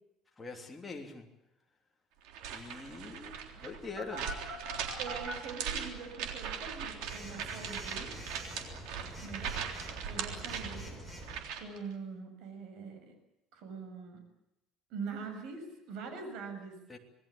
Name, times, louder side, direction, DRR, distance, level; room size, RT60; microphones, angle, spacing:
voice 1, 0.4-1.3 2.5-4.3 16.9-17.0, left 4 dB, 10° left, 0 dB, 3.1 m, -44 dB
sound 1, 2.2-11.8, right 7 dB, 85° right, 3.6 m, -40 dB
Telephone, 4.0-5.3 7.0-11.4, right 1 dB, 15° right, 5.4 m, -44 dB
voice 2, 5.0-8.1 9.2-10.9 11.6-13.1 13.5-14.2 14.9-16.8, right 5 dB, 70° right, 6 dB, 7.1 m, -43 dB
27.0 x 19.5 x 8.6 m, 0.88 s
cardioid pair, 165°, 0 cm